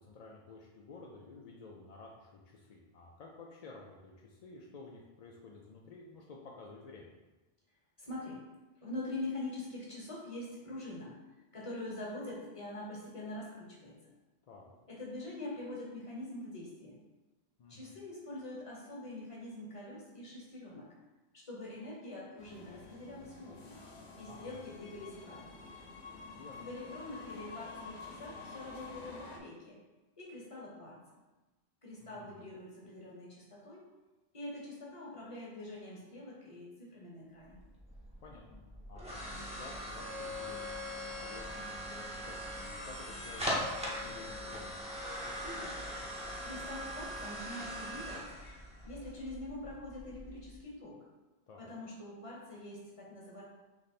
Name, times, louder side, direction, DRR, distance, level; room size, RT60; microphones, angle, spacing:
voice 1, 0.0-7.1 14.5-14.7 17.6-17.9 24.2-24.5 26.3-26.7 32.0-32.4 38.2-44.8 51.5-51.7, left 3 dB, 55° left, -2 dB, 0.4 m, -52 dB
voice 2, 8.0-8.4 8.8-11.1 11.5-14.1 14.9-17.0 17.7-20.9 21.3-23.8 24.2-25.6 26.6-29.8 30.2-31.0 31.8-33.9 34.3-37.6 45.4-45.9 46.4-48.3 48.8-51.0 51.6-53.4, left 2 dB, 30° left, -4 dB, 1.1 m, -44 dB
sound 1, 22.4-29.4, left 4 dB, 75° left, 1.0 m, -49 dB
sound 2, 37.5-50.5, equal, 5° right, 0.8 m, -41 dB
3.4 x 3.2 x 4.1 m, 1.1 s
omnidirectional pair, 1.1 m